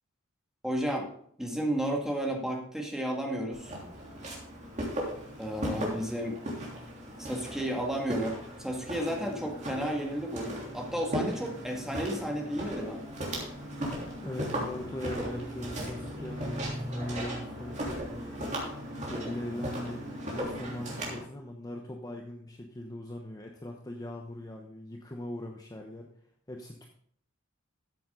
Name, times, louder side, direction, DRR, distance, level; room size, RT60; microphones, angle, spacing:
voice 1, 0.6-1.1 1.4-3.7 5.4-6.4 7.2-13.0, right 1 dB, ahead, 0 dB, 1.9 m, -32 dB
Walk footsteps, 3.5-21.2, equal, 35° right, 3.3 m, -37 dB
voice 2, 14.2-18.6 19.1-26.1 26.5-26.9, left 1 dB, 20° left, 1 dB, 1.0 m, -40 dB
13.5 x 7.7 x 3.9 m, 0.64 s
head